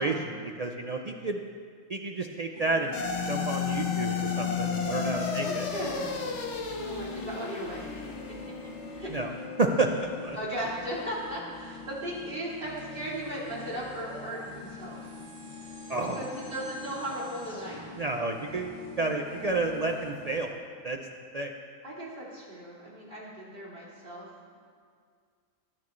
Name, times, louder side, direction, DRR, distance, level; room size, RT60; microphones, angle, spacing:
voice 1, 0.0-1.4 1.9-3.0 3.2-5.7 9.1-9.3 9.6-10.4 15.9-16.2 18.0-20.5 20.8-21.0 21.3-21.5, right 3 dB, 70° right, 2 dB, 0.3 m, -30 dB
sound 1, 2.5-20.4, left 3 dB, 35° left, 1.7 m, -46 dB
sound 2, 2.9-11.4, left 6 dB, 55° left, 1.2 m, -33 dB
voice 2, 5.4-6.1 6.8-8.5 8.8-9.2 10.3-15.1 16.0-17.8 21.8-24.5, equal, 40° right, -7 dB, 3.1 m, -37 dB
sound 3, 12.8-17.9, equal, 5° left, 2.8 m, -48 dB
19.5 x 9.6 x 3.1 m, 2.1 s
omnidirectional pair, 1.5 m